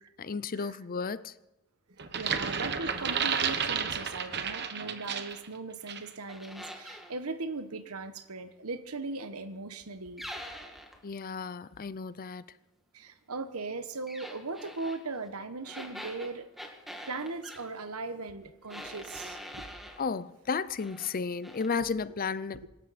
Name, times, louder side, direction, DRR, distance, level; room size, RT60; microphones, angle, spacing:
voice 1, 0.2-1.3 11.0-12.4 20.0-22.7, left 5 dB, 40° left, 0.6 m, -33 dB
sound 1, 2.0-5.5 5.9-6.1, right 7 dB, 50° right, 1.1 m, -31 dB
voice 2, 2.1-10.2 12.9-16.5 17.1-19.7 22.6-22.7, right 3 dB, 75° right, 1.2 m, -39 dB
sound 2, 6.3-7.1 10.2-11.0 14.1-15.0 15.6-17.6 18.7-20.0 20.5-21.1 21.4-21.7, equal, ahead, 1.9 m, -44 dB
25.5 x 13.0 x 4.3 m
head